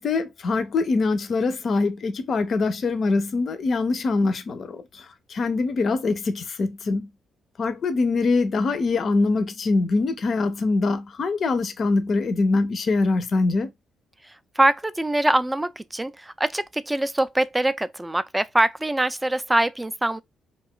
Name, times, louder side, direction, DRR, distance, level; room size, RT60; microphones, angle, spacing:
voice 1, 0.0-4.8 5.3-7.1 7.6-13.7, left 3 dB, 50° left, 0.5 m, -23 dB
voice 2, 14.6-20.2, right 1 dB, 10° right, 0.3 m, -23 dB
2.5 x 2.3 x 3.7 m
cardioid pair, 90°, 0 cm